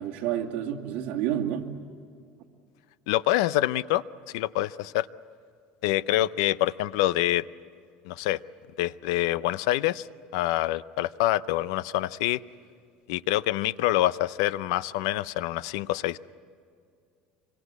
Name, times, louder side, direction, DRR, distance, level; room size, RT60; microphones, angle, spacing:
voice 1, 0.0-1.7, right 10 dB, 60° right, 1 dB, 2.4 m, -29 dB
voice 2, 3.1-4.0 4.3-5.1 5.8-7.4 8.0-8.4 8.8-10.1 10.3-12.4 13.1-16.2, left 15 dB, 85° left, 17 dB, 0.6 m, -26 dB
26.0 x 24.0 x 8.3 m, 2.3 s
cardioid pair, 155°, 3 cm